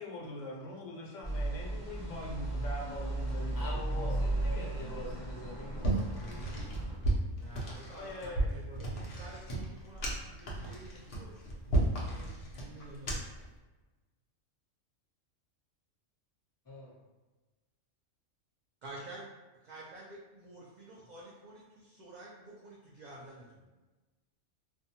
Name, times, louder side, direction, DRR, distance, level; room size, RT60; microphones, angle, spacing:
voice 1, 0.0-4.3 7.8-8.6, left 1 dB, 80° left, -2 dB, 1.0 m, -43 dB
sound 1, 1.2-7.0, right 2 dB, 5° left, 1.2 m, -35 dB
voice 2, 3.5-6.8 16.7-16.9, left 1 dB, 25° left, -6 dB, 0.5 m, -45 dB
sound 2, 5.8-13.4, right 2 dB, 55° left, 0.7 m, -34 dB
voice 3, 7.3-8.9 9.2-13.2 18.8-19.3 19.6-23.7, right 1 dB, 80° right, -5 dB, 0.4 m, -50 dB
2.5 x 2.2 x 2.7 m, 1.2 s
omnidirectional pair, 1.3 m